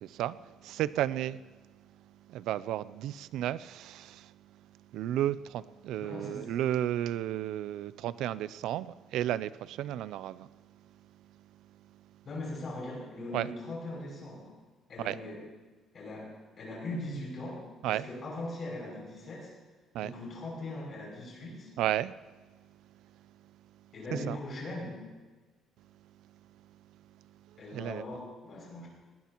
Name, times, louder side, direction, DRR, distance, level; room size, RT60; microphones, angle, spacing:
voice 1, 0.0-1.4 2.3-4.4 4.9-10.5 13.3-13.5 15.0-15.2 17.8-18.0 19.9-20.1 21.8-22.2 24.1-24.4 27.5-28.0, right 12 dB, 75° right, 0.4 m, -33 dB
voice 2, 6.0-6.5 12.2-14.5 14.9-15.4 15.9-16.3 16.6-17.6 17.9-19.5 20.0-21.7 23.9-25.0 27.6-28.9, left 1 dB, 30° left, 6.5 m, -40 dB
19.5 x 19.0 x 3.0 m
cardioid pair, 175°, 0 cm